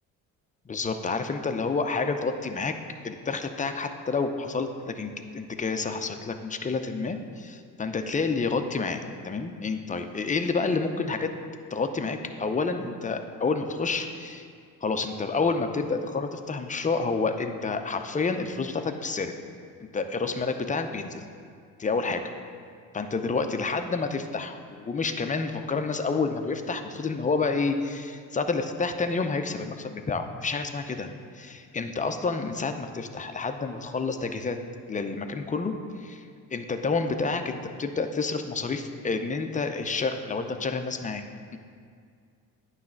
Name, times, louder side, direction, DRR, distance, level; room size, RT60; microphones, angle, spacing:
voice 1, 0.7-2.8 3.0-11.3 11.7-14.5 14.8-19.3 19.8-21.2 21.8-22.2 22.9-31.1 31.3-34.6 34.9-36.2 36.5-41.2, left 4 dB, 20° left, 7 dB, 0.5 m, -29 dB
9.2 x 3.2 x 5.8 m, 2.2 s
supercardioid pair, 75°, 38 cm